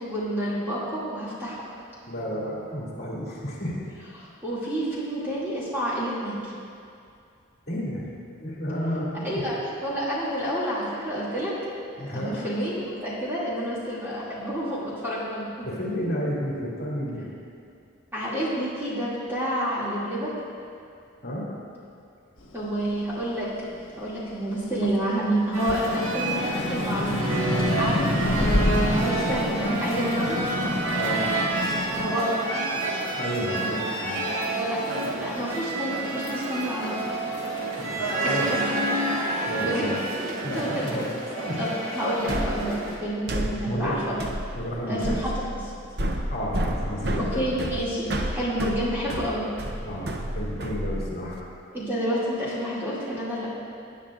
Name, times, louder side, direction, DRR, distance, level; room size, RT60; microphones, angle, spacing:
voice 1, 0.0-1.6 4.2-6.5 9.2-9.6 9.8-11.5 12.0-15.7 18.1-20.3 22.5-23.5 24.0-28.1 28.4-30.4 31.9-32.4 34.4-34.9 35.2-36.9 38.2-38.6 39.6-39.9 40.2-40.9 41.6-41.7 41.9-44.2 44.9-45.6 47.2-49.4 51.7-53.5, equal, 10° right, -9 dB, 2.5 m, -29 dB
voice 2, 2.1-3.8 7.7-8.1 8.3-9.6 12.0-12.4 15.6-17.3 21.2-21.5 31.0-31.3 33.2-34.2 37.7-38.5 39.4-39.9 40.4-41.1 41.4-41.6 43.7-44.1 44.5-45.2 46.3-47.5 49.8-51.4, equal, 50° left, -6 dB, 2.6 m, -31 dB
sound 1, 22.5-25.1 25.5-32.2, left 1 dB, 85° left, 1.1 m, -28 dB
sound 2, 25.5-43.0, right 2 dB, 90° right, 1.9 m, -29 dB
sound 3, 42.3-51.4, right 1 dB, 50° right, 0.7 m, -31 dB
18.5 x 9.9 x 2.5 m, 2.4 s
head